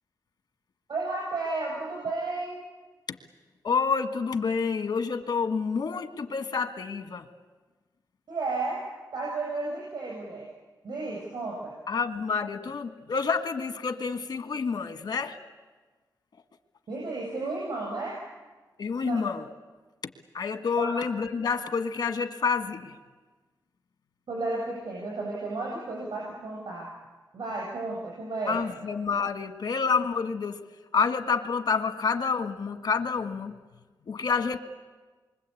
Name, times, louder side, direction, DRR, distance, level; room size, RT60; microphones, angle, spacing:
voice 1, 0.9-2.6 8.3-8.8 9.1-10.5 10.8-11.7 16.9-18.2 19.0-19.2 20.8-21.0 24.3-26.9 27.3-28.8, right 3 dB, 80° right, -1 dB, 7.9 m, -33 dB
voice 2, 3.6-7.2 11.9-15.4 18.8-19.4 20.3-23.0 28.5-30.6 30.9-33.6 34.1-34.6, left 5 dB, 75° left, 7 dB, 1.6 m, -28 dB
27.5 x 24.5 x 8.5 m, 1.3 s
wide cardioid pair, 110°, 7 cm